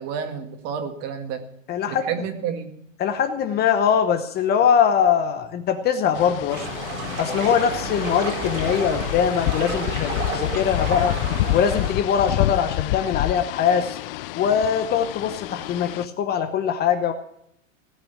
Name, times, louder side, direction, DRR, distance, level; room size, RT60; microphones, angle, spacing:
voice 1, 0.0-1.4 1.9-2.7, right 7 dB, 40° right, 7 dB, 2.1 m, -30 dB
voice 2, 1.7-2.1 3.0-6.7 7.2-11.2 11.5-14.0 14.3-17.1, left 8 dB, 25° left, 9 dB, 0.9 m, -22 dB
sound 1, 6.1-16.1, left 16 dB, 45° left, 0.5 m, -28 dB
sound 2, 6.5-11.9, right 4 dB, 85° right, 4.3 m, -31 dB
17.5 x 6.0 x 9.0 m, 0.74 s
hypercardioid pair, 130°, 39 cm